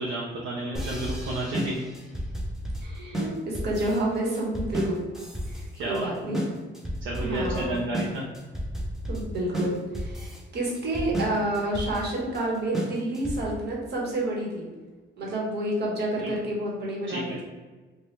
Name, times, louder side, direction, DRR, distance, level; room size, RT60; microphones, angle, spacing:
voice 1, 0.0-1.8 5.7-6.4 7.0-8.2 16.2-16.3 17.1-17.4, right 1 dB, 75° right, -4 dB, 0.5 m, -31 dB
sound 1, 0.7-13.6, equal, ahead, 0.6 m, -33 dB
voice 2, 2.8-5.0 5.5-6.4 7.2-7.8 9.1-14.7 15.2-17.4, right 1 dB, 55° right, -3 dB, 1.0 m, -29 dB
2.9 x 2.2 x 3.1 m, 1.3 s
cardioid pair, 90°, 20 cm